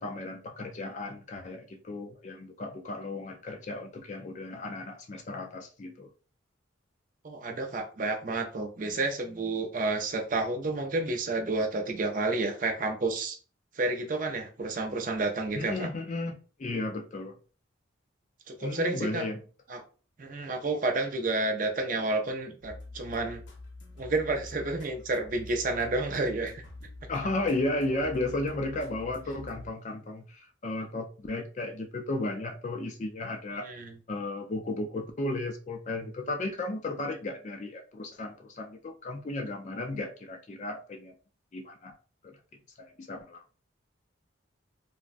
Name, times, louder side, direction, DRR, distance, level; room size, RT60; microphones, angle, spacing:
voice 1, 0.0-6.1 15.6-17.4 18.6-19.4 27.1-33.7 34.1-41.1 41.5-42.0 42.2-42.4 42.8-43.4, left 2 dB, 35° left, 0.4 m, -34 dB
voice 2, 7.2-13.4 13.7-15.9 18.5-19.3 19.7-19.8 20.2-23.4 24.0-26.6 33.6-33.9, right 2 dB, 40° right, 0.4 m, -30 dB
sound 1, 22.6-29.7, left 2 dB, 70° left, 0.7 m, -46 dB
3.4 x 2.0 x 2.5 m
head